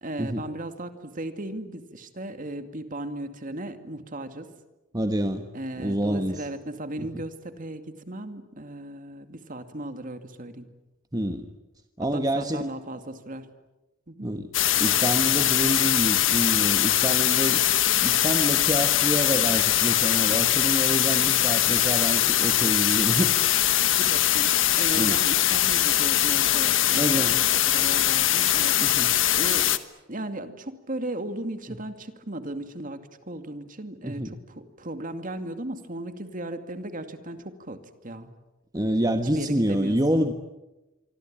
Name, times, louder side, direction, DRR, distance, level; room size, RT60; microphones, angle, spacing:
voice 1, 0.0-4.5 5.5-10.7 12.1-13.5 14.1-14.3 23.8-28.8 29.4-29.7 30.1-38.3 39.3-40.3, right 1 dB, 45° right, 8 dB, 2.4 m, -36 dB
voice 2, 4.9-5.5 5.8-6.5 7.0-7.2 11.1-11.5 12.0-12.7 14.2-14.5 14.8-17.6 18.0-23.3 24.9-25.2 26.9-27.4 28.8-29.1 31.7-31.8 34.0-34.3 38.7-40.3, right 1 dB, 20° right, 7 dB, 1.3 m, -27 dB
sound 1, 14.5-29.8, left 12 dB, 70° left, 1.4 m, -22 dB
26.5 x 24.5 x 8.9 m, 1.0 s
head